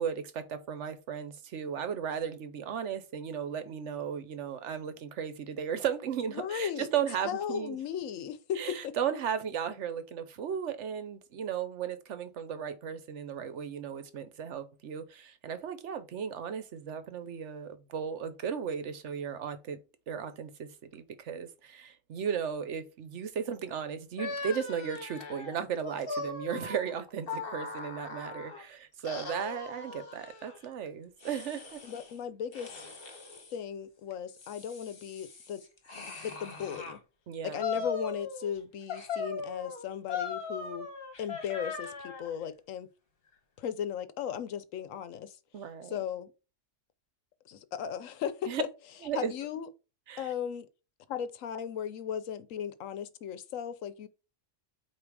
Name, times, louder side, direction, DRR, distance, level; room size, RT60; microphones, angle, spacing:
voice 1, 0.0-7.8 8.6-19.8 20.1-31.8 37.3-37.8 45.5-46.0 48.5-48.6 49.0-49.3 50.1-50.3, right 8 dB, 70° right, 1.1 m, -35 dB
voice 2, 6.3-6.9 7.2-8.9 31.8-32.8 33.5-35.6 36.2-37.0 37.4-40.9 41.2-42.9 43.6-45.4 45.9-46.3 47.5-48.7 49.1-49.7 50.2-50.7 51.1-54.1, left 8 dB, 85° left, 1.1 m, -36 dB
sound 1, 24.2-28.6 29.0-30.6 31.2-32.1 32.5-33.5 34.1-37.0 37.6-38.6 38.9-42.3, left 4 dB, 45° left, 1.5 m, -39 dB
8.5 x 2.9 x 4.7 m
omnidirectional pair, 1.3 m